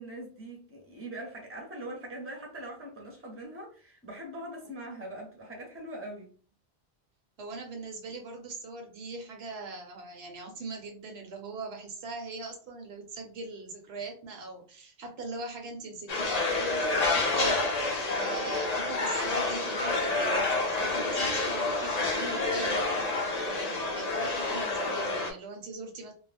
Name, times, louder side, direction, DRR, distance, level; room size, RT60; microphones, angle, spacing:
voice 1, 0.0-6.3, right 1 dB, 15° right, 0.7 m, -42 dB
voice 2, 7.4-17.9 18.2-22.8 23.3-26.1, right 3 dB, 75° right, 0.9 m, -41 dB
sound 1, 16.1-25.3, left 3 dB, 50° left, 0.6 m, -28 dB
2.3 x 2.0 x 3.3 m
omnidirectional pair, 1.1 m